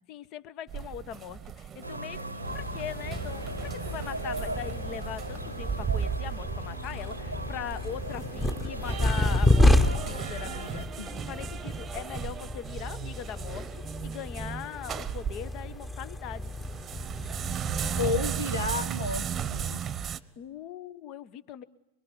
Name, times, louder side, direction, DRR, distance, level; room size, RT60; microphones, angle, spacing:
voice 1, 0.1-16.5 20.4-21.6, left 10 dB, 40° left, 17 dB, 1.2 m, -41 dB
sound 1, 0.7-15.9 16.3-20.2, right 8 dB, 25° right, 1.1 m, -36 dB
sound 2, 1.8-10.8, right 1 dB, 85° right, 1.0 m, -38 dB
sound 3, 2.4-19.9, left 1 dB, 10° left, 1.5 m, -30 dB
voice 2, 18.0-19.8, left 4 dB, 75° left, 9 dB, 1.8 m, -32 dB
25.5 x 23.5 x 9.7 m, 0.85 s
figure-of-eight pair, 90°, 0 cm